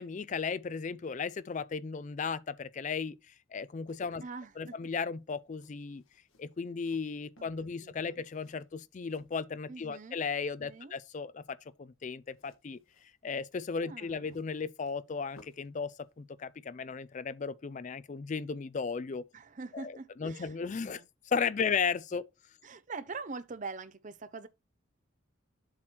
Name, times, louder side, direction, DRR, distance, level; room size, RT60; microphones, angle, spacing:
voice 1, 0.0-4.2 4.6-6.0 6.4-12.8 13.2-19.2 19.7-19.9 20.2-22.2, left 5 dB, 35° left, 0.4 m, -35 dB
sound 1, 3.6-10.1 10.3-11.0 12.3-15.8 16.0-16.2, left 2 dB, 80° left, 1.6 m, -63 dB
voice 2, 4.2-4.8 7.4-7.5 7.8-8.2 9.7-10.2 10.6-11.0 13.8-14.4 19.3-21.1 22.6-24.5, right 4 dB, 40° right, 0.5 m, -44 dB
7.4 x 3.0 x 6.0 m
head